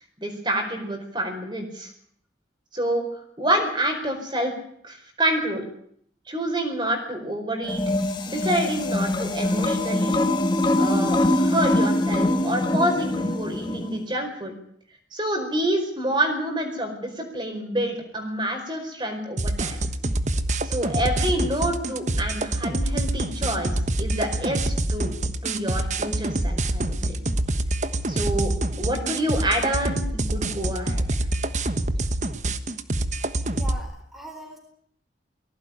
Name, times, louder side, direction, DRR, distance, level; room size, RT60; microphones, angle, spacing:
voice 1, 0.2-1.9 2.7-3.0 3.4-4.5 4.8-5.6 6.3-7.8 8.3-10.2 10.8-14.5 15.1-19.8 20.6-25.1 25.4-27.2 28.1-31.0, right 1 dB, 25° right, 4 dB, 4.8 m, -27 dB
sound 1, 7.6-14.0, left 1 dB, 25° left, 1.9 m, -23 dB
sound 2, 19.4-33.8, right 1 dB, 40° right, 1.3 m, -26 dB
voice 2, 33.5-34.6, equal, ahead, 2 dB, 4.1 m, -40 dB
19.5 x 17.0 x 9.9 m, 0.65 s
head